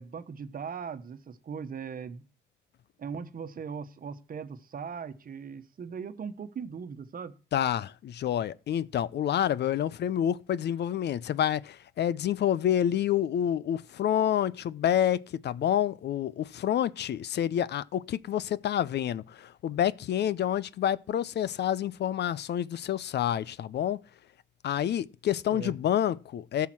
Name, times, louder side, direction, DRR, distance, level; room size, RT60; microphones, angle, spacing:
voice 1, 0.0-2.2 3.0-7.3 25.5-25.7, right 6 dB, 45° right, 1.2 m, -39 dB
voice 2, 7.5-24.0 24.6-26.7, left 10 dB, 60° left, 0.5 m, -28 dB
13.5 x 5.8 x 6.1 m
cardioid pair, 90°, 20 cm